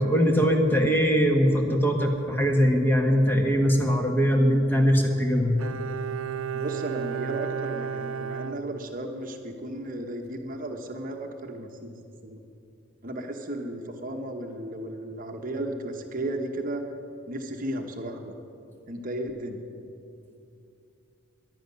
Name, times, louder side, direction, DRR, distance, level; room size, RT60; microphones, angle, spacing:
voice 1, 0.0-5.6, equal, 10° left, 2 dB, 1.4 m, -21 dB
Bowed string instrument, 5.6-9.3 9.6-9.7, right 7 dB, 85° right, 0.5 m, -33 dB
voice 2, 6.6-12.4 13.0-16.8 17.3-18.4 18.9-19.6, right 1 dB, 40° right, 4 dB, 1.0 m, -34 dB
11.0 x 11.0 x 9.4 m, 2.6 s
head